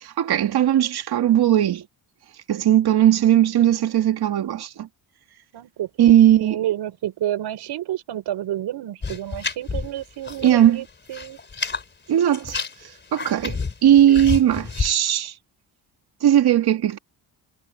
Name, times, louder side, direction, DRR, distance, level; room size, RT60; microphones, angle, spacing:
voice 1, 0.0-1.8 2.5-4.9 6.0-6.6 10.4-10.8 12.1-12.6 13.1-15.3 16.2-17.0, right 11 dB, 65° right, 2.5 m, -18 dB
voice 2, 5.5-6.2 6.4-11.4, right 12 dB, 80° right, 6.4 m, -30 dB
sound 1, 9.0-10.6 10.9-11.8 12.2-14.9, left 4 dB, 25° left, 3.7 m, -29 dB
cardioid pair, 140°, 40 cm